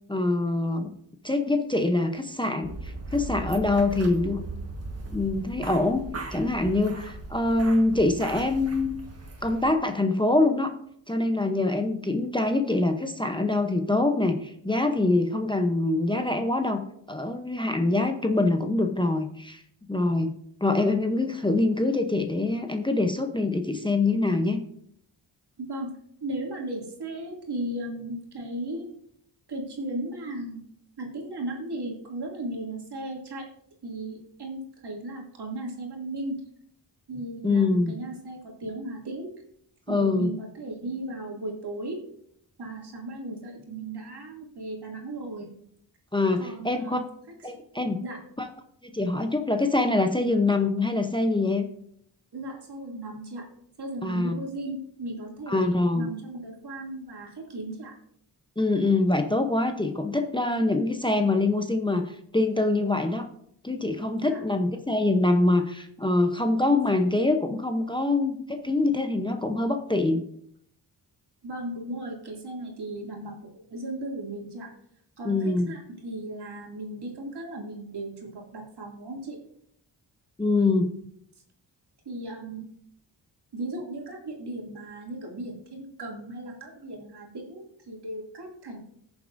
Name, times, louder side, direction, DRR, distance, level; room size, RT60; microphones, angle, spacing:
voice 1, 0.1-0.9 1.2-4.4 5.1-6.0 6.3-9.0 9.4-10.7 11.1-16.8 17.1-19.6 19.9-20.3 20.6-24.6 37.4-37.9 39.9-40.3 46.1-47.0 47.4-48.0 48.4-48.5 48.8-51.7 54.0-54.4 55.5-56.1 58.6-63.3 63.6-70.3 75.2-75.7 80.4-80.9, left 2 dB, 10° left, 5 dB, 0.8 m, -24 dB
sound 1, 2.6-9.7, right 2 dB, 35° right, 1.5 m, -38 dB
voice 2, 25.6-25.9 26.2-28.9 29.5-30.6 31.0-33.4 33.8-36.3 37.1-39.3 39.9-42.0 42.6-45.5 46.4-47.0 47.4-47.5 48.0-48.2 52.3-53.4 53.8-57.9 64.1-64.4 71.4-74.7 75.2-79.4 82.0-82.6 83.5-88.8, right 1 dB, 65° right, -1 dB, 2.6 m, -36 dB
19.0 x 7.0 x 2.6 m, 0.71 s
wide cardioid pair, 85°, 42 cm